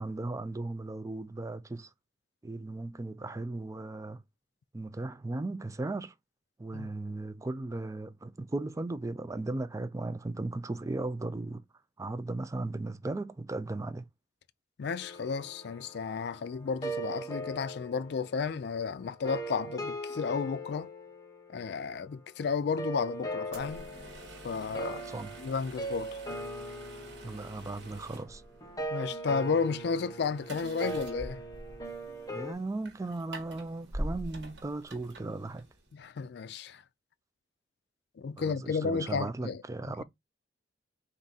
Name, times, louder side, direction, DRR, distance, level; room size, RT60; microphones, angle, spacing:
voice 1, 0.0-1.9 2.4-4.2 4.7-6.1 6.6-11.6 12.0-14.1 24.9-25.4 27.2-28.4 32.3-35.7 38.4-40.0, right 2 dB, 20° right, 0.4 m, -36 dB
voice 2, 14.8-20.9 21.5-23.9 24.4-25.1 25.4-26.2 28.9-31.4 35.9-36.8 38.2-39.6, left 5 dB, 65° left, 0.4 m, -33 dB
sound 1, 15.0-22.2 22.8-32.5, right 1 dB, 20° left, 0.9 m, -40 dB
sound 2, 23.5-36.0, right 1 dB, 90° right, 1.3 m, -45 dB
3.6 x 2.5 x 3.9 m
head